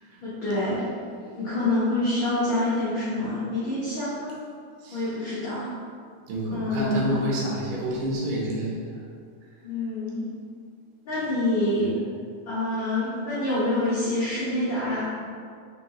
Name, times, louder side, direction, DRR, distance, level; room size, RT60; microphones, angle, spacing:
voice 1, 0.2-0.8 1.2-4.3 4.9-5.7 6.5-7.1 9.6-10.2 11.0-11.9 12.4-15.0, left 1 dB, 75° left, -11 dB, 1.1 m, -26 dB
voice 2, 6.3-9.0, equal, 85° right, -4 dB, 2.4 m, -29 dB
4.6 x 3.7 x 3.0 m, 2.2 s
omnidirectional pair, 3.5 m